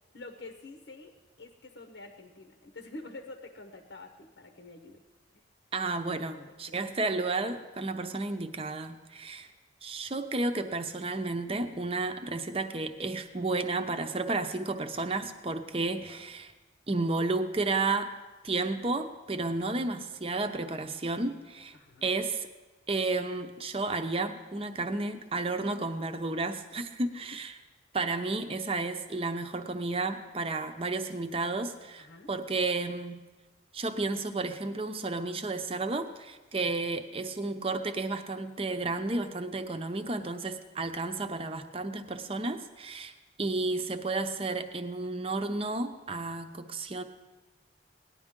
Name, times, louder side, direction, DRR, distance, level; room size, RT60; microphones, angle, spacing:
voice 1, 0.1-5.0 5.3-5.4 6.3-6.8 21.7-22.1 32.0-32.3, left 2 dB, 80° left, 5 dB, 1.0 m, -47 dB
voice 2, 5.7-9.5 9.8-16.5 16.9-18.1 18.4-21.8 22.0-22.5 22.9-27.5 27.9-33.2 33.7-43.1 43.4-47.0, right 3 dB, 30° right, 8 dB, 0.7 m, -32 dB
18.0 x 10.5 x 3.7 m, 1.2 s
head